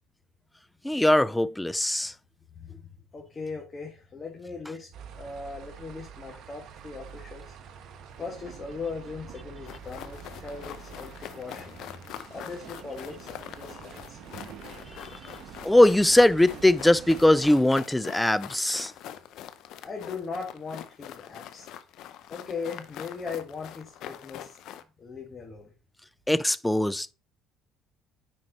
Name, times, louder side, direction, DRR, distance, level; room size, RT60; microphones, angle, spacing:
voice 1, 0.8-2.1 14.9-15.1 15.6-18.9 26.3-27.1, left 1 dB, 5° left, 0.4 m, -21 dB
voice 2, 2.5-7.5 8.2-11.8 12.3-14.3 19.8-21.7 22.3-24.6 25.0-25.7, left 4 dB, 30° left, 1.6 m, -39 dB
sound 1, 4.9-17.6, right 8 dB, 60° right, 1.1 m, -46 dB
sound 2, 9.7-24.8, left 11 dB, 70° left, 0.6 m, -44 dB
9.7 x 4.5 x 2.9 m
supercardioid pair, 90°, 0 cm